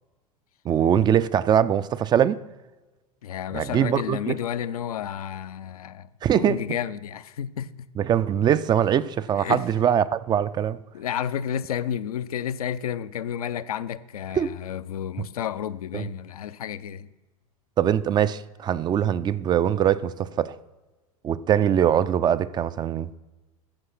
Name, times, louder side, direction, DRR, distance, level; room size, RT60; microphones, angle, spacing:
voice 1, 0.7-2.4 3.5-4.4 6.2-6.6 8.0-10.8 14.3-14.5 15.9-16.0 17.8-20.6 21.2-23.1, right 9 dB, 20° right, 0.3 m, -22 dB
voice 2, 3.2-7.9 9.3-9.6 10.9-17.1, left 9 dB, 75° left, 0.5 m, -31 dB
13.5 x 4.9 x 5.8 m
figure-of-eight pair, 85°, 19 cm